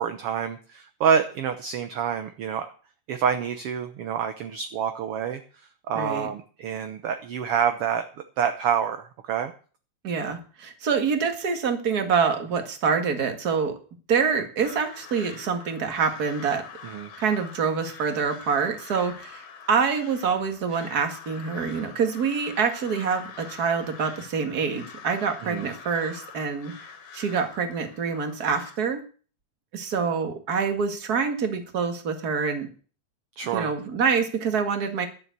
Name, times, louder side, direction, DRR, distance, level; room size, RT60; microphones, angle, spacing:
voice 1, 0.0-2.7 3.1-5.4 5.9-9.5 16.8-17.1 25.4-25.7 33.4-33.7, right 7 dB, 65° right, 8 dB, 1.5 m, -27 dB
voice 2, 6.0-6.3 10.0-13.7 14.1-16.6 17.2-19.4 19.7-26.7 27.1-29.0 29.7-32.7 33.5-35.1, right 6 dB, 35° right, 6 dB, 1.9 m, -26 dB
Crow, 14.6-28.8, left 6 dB, 70° left, 3.0 m, -45 dB
12.5 x 7.1 x 8.2 m, 0.39 s
omnidirectional pair, 3.5 m